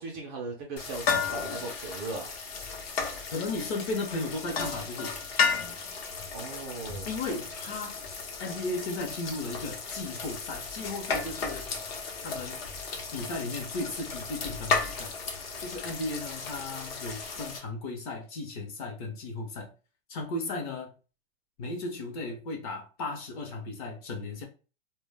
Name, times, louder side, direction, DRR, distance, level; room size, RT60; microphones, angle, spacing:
voice 1, 0.0-2.3 6.3-7.1, right 3 dB, 25° right, 0.4 m, -38 dB
sound 1, 0.8-17.6, left 5 dB, 75° left, 0.9 m, -34 dB
voice 2, 3.3-5.2 7.1-8.0 8.4-11.7 12.2-12.6 13.1-15.1 15.6-19.7 20.1-20.9 21.6-24.5, left 2 dB, 40° left, 0.7 m, -35 dB
2.2 x 2.0 x 3.3 m
hypercardioid pair, 155°, 30 cm